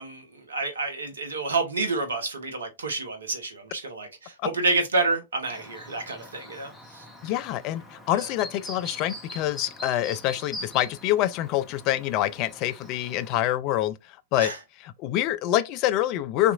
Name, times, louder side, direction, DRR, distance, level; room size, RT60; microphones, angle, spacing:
voice 1, 0.0-7.0 8.1-8.3 14.4-14.6, right 3 dB, 75° right, 0.8 m, -29 dB
Chirp tweet, 5.4-13.4, left 1 dB, 5° left, 0.9 m, -43 dB
voice 2, 7.2-13.9 14.3-14.5 15.0-16.5, left 13 dB, 40° left, 0.4 m, -26 dB
3.5 x 2.9 x 2.3 m
figure-of-eight pair, 100°, 0 cm